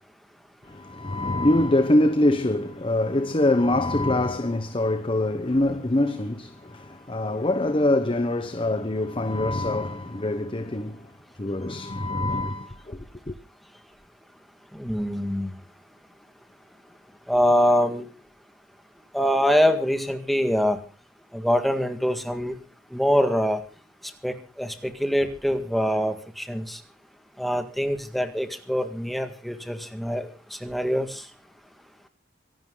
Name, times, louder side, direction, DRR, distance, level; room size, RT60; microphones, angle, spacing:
voice 1, 0.7-11.1 11.4-13.0 13.3-13.4, left 1 dB, 30° left, 0.9 m, -24 dB
voice 2, 14.7-15.5 17.3-18.0 19.1-20.8 21.3-22.5 22.9-23.6 24.2-26.8 27.4-31.3, equal, ahead, 1.8 m, -24 dB
25.0 x 12.0 x 3.9 m
head